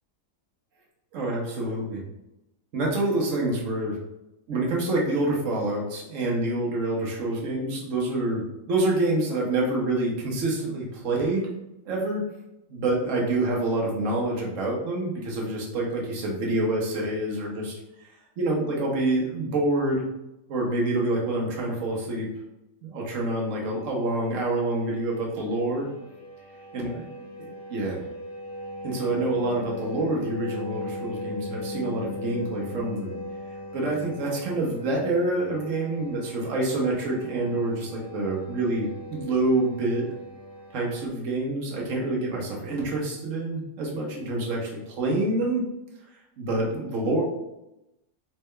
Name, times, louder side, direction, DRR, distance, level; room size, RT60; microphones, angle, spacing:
voice 1, 1.1-2.0 2.7-4.0 4.5-8.4 8.7-11.5 11.8-12.2 12.7-18.1 18.4-20.0 20.5-22.3 22.8-25.9 26.7-27.0 27.7-28.0 28.8-33.2 33.7-40.0 40.7-45.6 46.4-47.2, right 2 dB, 55° right, -2 dB, 1.2 m, -27 dB
sound 1, 23.7-41.1, left 1 dB, 75° left, 1.7 m, -39 dB
4.2 x 3.4 x 2.2 m, 0.90 s
omnidirectional pair, 1.9 m